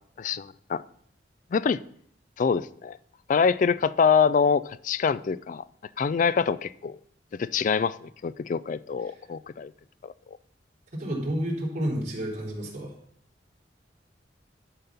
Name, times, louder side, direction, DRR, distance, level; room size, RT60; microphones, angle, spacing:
voice 1, 0.2-0.8 1.5-1.8 2.4-3.0 3.3-5.6 6.0-7.0 7.4-9.7 10.0-10.1, left 6 dB, 45° left, 0.3 m, -25 dB
voice 2, 10.9-12.9, equal, 40° right, 3.5 m, -30 dB
11.5 x 4.2 x 6.8 m
head